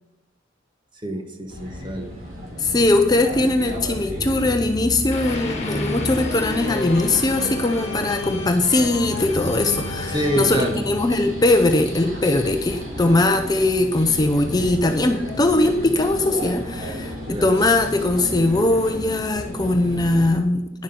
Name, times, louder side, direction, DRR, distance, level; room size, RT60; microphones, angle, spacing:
voice 1, 1.0-2.1 10.1-10.8 17.3-17.5, equal, 25° right, 5 dB, 1.1 m, -26 dB
sound 1, 1.5-20.4, equal, 40° right, 4.0 m, -33 dB
voice 2, 2.6-20.8, left 2 dB, 20° left, 5 dB, 0.6 m, -20 dB
sound 2, 5.1-12.1, left 2 dB, 35° left, 1.8 m, -31 dB
10.5 x 7.2 x 5.3 m, 0.96 s
head